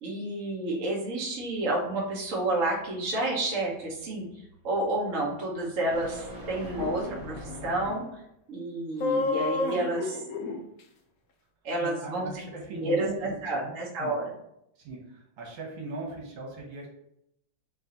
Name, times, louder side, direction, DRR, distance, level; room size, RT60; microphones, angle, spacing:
voice 1, 0.0-4.2 4.6-8.2 8.5-10.2 11.6-12.3 12.7-14.2, right 2 dB, 50° right, -2 dB, 1.2 m, -30 dB
sound 1, 1.4-8.3, left 1 dB, 15° right, 1.0 m, -44 dB
sound 2, 6.6-6.9 9.0-10.6, left 3 dB, 70° left, 0.8 m, -29 dB
voice 2, 11.8-14.1 14.8-16.9, right 3 dB, 85° right, -1 dB, 1.9 m, -39 dB
4.1 x 2.7 x 3.9 m, 0.79 s
omnidirectional pair, 2.2 m